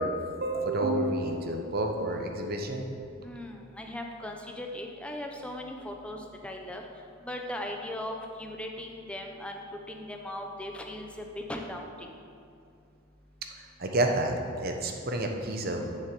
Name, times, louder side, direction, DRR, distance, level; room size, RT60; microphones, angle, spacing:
voice 1, 0.0-2.9 13.6-16.0, right 1 dB, 50° right, 3 dB, 1.0 m, -30 dB
voice 2, 3.2-6.9 7.2-12.1, left 1 dB, 5° left, 2 dB, 0.7 m, -38 dB
7.5 x 7.1 x 6.9 m, 2.5 s
head